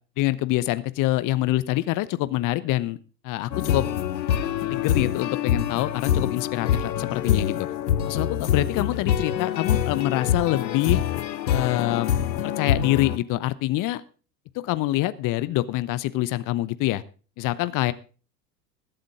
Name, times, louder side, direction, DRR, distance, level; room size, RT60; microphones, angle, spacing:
voice 1, 0.2-3.0 3.2-3.8 4.7-7.7 8.1-11.0 11.5-12.1 12.4-14.0 14.5-17.0 17.4-17.9, left 16 dB, 40° left, 16 dB, 0.9 m, -25 dB
sound 1, 3.5-13.2, left 9 dB, 80° left, 0.9 m, -25 dB
21.5 x 7.9 x 3.6 m, 0.36 s
figure-of-eight pair, 80°, 50 cm